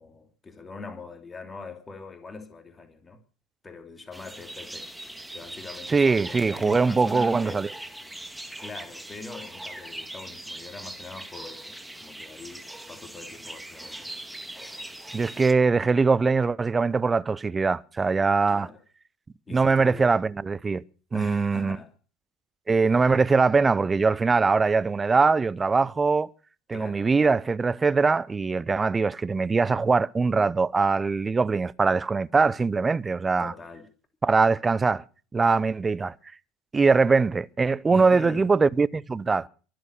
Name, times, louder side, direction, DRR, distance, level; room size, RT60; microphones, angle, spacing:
voice 1, 0.0-3.2 3.6-4.9 5.3-7.7 8.6-14.1 18.5-18.8 19.5-20.1 21.1-21.9 24.6-24.8 26.7-27.1 33.4-33.9 37.9-38.5, left 3 dB, 20° left, 3.0 m, -42 dB
sound 1, 4.1-15.5, right 1 dB, 5° right, 1.9 m, -41 dB
voice 2, 5.9-7.7 15.1-18.7 19.5-20.8 21.1-21.8 22.7-26.3 26.7-33.5 34.2-35.0 35.3-36.1 36.7-39.5, right 4 dB, 20° right, 0.7 m, -22 dB
23.5 x 7.9 x 6.7 m
hypercardioid pair, 75°, 0 cm